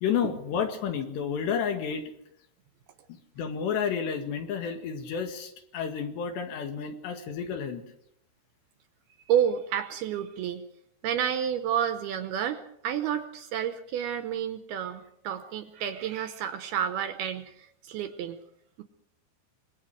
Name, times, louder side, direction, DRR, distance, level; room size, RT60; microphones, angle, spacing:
voice 1, 0.0-2.0 3.4-7.8, left 7 dB, 70° left, 5 dB, 4.0 m, -31 dB
voice 2, 9.3-10.6 11.0-18.4 18.8-18.9, right 9 dB, 75° right, 9 dB, 2.5 m, -30 dB
25.5 x 21.0 x 4.9 m, 0.74 s
omnidirectional pair, 5.2 m